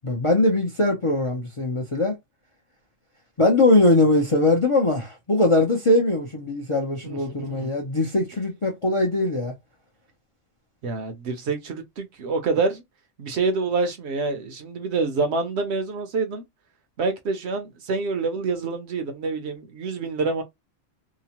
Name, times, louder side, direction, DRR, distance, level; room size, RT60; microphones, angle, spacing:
voice 1, 0.0-2.1 3.4-9.5, left 2 dB, 40° left, 0.4 m, -21 dB
voice 2, 10.8-12.8 13.2-16.4 17.0-20.4, right 4 dB, 65° right, 0.8 m, -26 dB
2.9 x 2.0 x 2.8 m
omnidirectional pair, 1.3 m